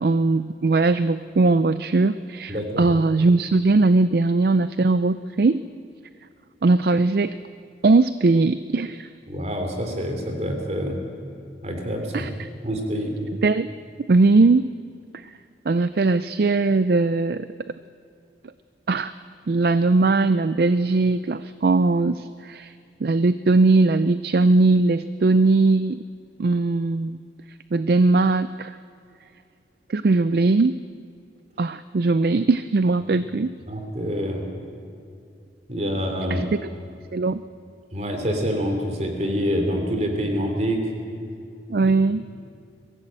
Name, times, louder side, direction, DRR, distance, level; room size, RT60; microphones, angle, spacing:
voice 1, 0.0-5.6 6.6-7.3 7.8-9.1 12.1-12.5 13.4-13.7 14.0-14.6 15.2-15.3 15.7-17.5 18.9-19.1 19.5-22.7 23.0-26.0 26.4-27.2 27.7-28.8 29.9-30.7 31.6-33.5 36.3-36.5 37.1-37.4 41.7-42.2, right 3 dB, 55° right, 14 dB, 0.4 m, -20 dB
voice 2, 2.5-2.9 9.3-11.0 11.6-12.3 12.6-13.1 33.7-34.4 35.7-36.4 37.9-40.8 41.7-41.9, equal, 35° right, 3 dB, 3.1 m, -26 dB
22.5 x 15.0 x 8.9 m, 2.4 s
head